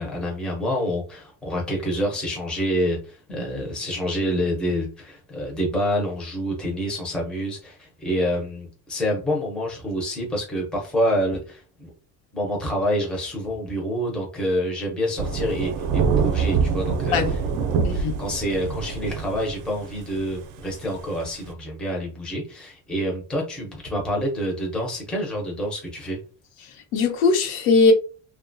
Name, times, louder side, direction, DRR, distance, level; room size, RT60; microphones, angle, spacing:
voice 1, 0.0-11.9 12.3-17.2 17.7-26.2, equal, ahead, 0.5 m, -27 dB
Thunder / Rain, 15.2-21.5, right 5 dB, 55° right, 0.5 m, -25 dB
voice 2, 26.6-27.9, left 4 dB, 75° left, 0.8 m, -20 dB
2.7 x 2.2 x 2.5 m
cardioid pair, 165°, 38 cm